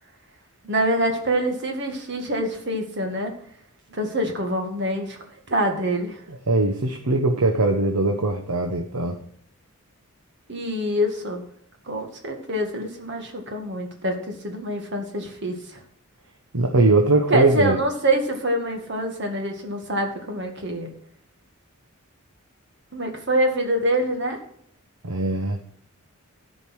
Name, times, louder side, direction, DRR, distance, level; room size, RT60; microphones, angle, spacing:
voice 1, 0.7-3.4 3.9-5.2 5.5-6.2 10.5-11.4 11.9-15.8 17.3-20.9 22.9-24.4, right 1 dB, 50° right, 3 dB, 2.1 m, -25 dB
voice 2, 6.3-9.2 16.5-17.8 25.0-25.6, right 2 dB, 90° right, 3 dB, 1.1 m, -21 dB
13.5 x 5.3 x 6.2 m, 0.65 s
head